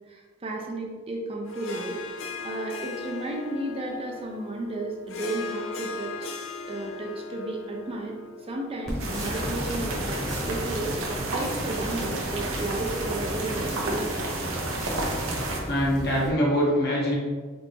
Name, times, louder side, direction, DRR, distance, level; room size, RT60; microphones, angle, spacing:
voice 1, 0.1-6.3 6.6-8.1 8.5-14.2, right 2 dB, 30° right, 0 dB, 0.5 m, -33 dB
Harp, 1.5-10.1, left 4 dB, 75° left, 0.5 m, -39 dB
sound 1, 8.9-16.3, equal, 5° left, 1.0 m, -36 dB
sound 2, 9.0-15.6, right 2 dB, 70° right, 0.8 m, -31 dB
voice 2, 15.3-17.1, equal, 50° left, -4 dB, 1.2 m, -24 dB
4.3 x 2.6 x 3.5 m, 1.4 s
head